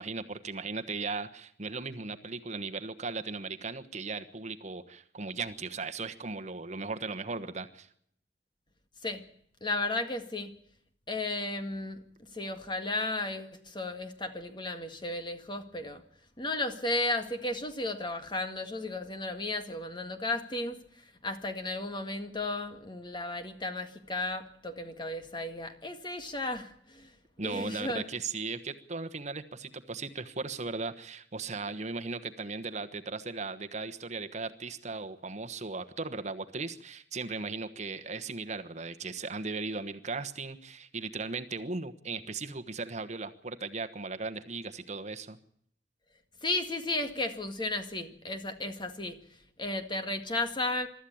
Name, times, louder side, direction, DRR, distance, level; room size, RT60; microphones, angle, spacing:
voice 1, 0.0-7.9 27.4-45.4, right 3 dB, 40° right, 1.2 m, -37 dB
voice 2, 9.6-10.5 11.1-16.0 16.4-27.1 27.4-28.1 46.4-49.2 49.6-50.9, left 2 dB, 25° left, 1.9 m, -34 dB
23.0 x 13.5 x 8.7 m
head